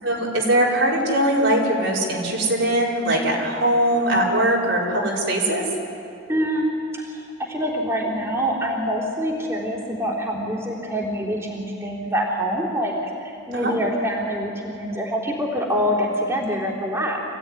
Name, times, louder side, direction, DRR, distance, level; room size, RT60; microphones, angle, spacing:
voice 1, 0.0-5.6 13.5-13.7, right 1 dB, 70° right, -3 dB, 4.9 m, -21 dB
voice 2, 6.3-17.2, equal, 15° right, -4 dB, 3.4 m, -25 dB
26.0 x 16.5 x 9.8 m, 2.7 s
head